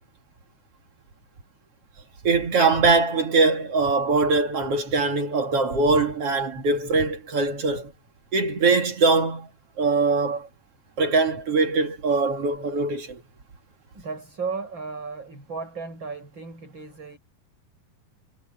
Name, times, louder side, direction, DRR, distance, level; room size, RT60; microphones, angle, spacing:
voice 1, 2.2-7.9 8.3-9.5 9.8-10.5 11.0-13.2, right 3 dB, 45° right, 2.7 m, -22 dB
voice 2, 13.9-17.2, right 4 dB, 30° right, 7.8 m, -35 dB
omnidirectional pair, 4.4 m